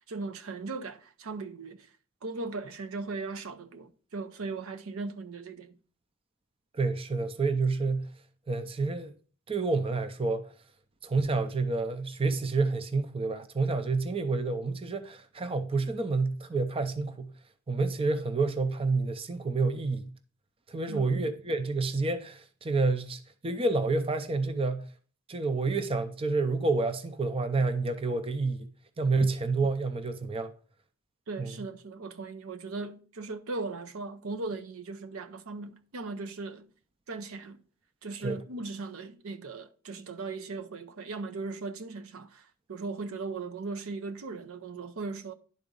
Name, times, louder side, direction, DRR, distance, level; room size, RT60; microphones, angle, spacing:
voice 1, 0.1-1.9 2.2-5.8 20.9-21.2 31.3-36.7 37.1-37.6 38.0-45.3, right 3 dB, 75° right, 0.6 m, -38 dB
voice 2, 6.7-8.1 8.5-9.1 9.5-10.5 11.0-17.3 17.7-20.1 20.7-24.8 25.3-28.7 29.0-30.5 31.4-31.6 38.2-38.4, right 3 dB, 25° right, 0.5 m, -29 dB
10.5 x 4.0 x 3.7 m
head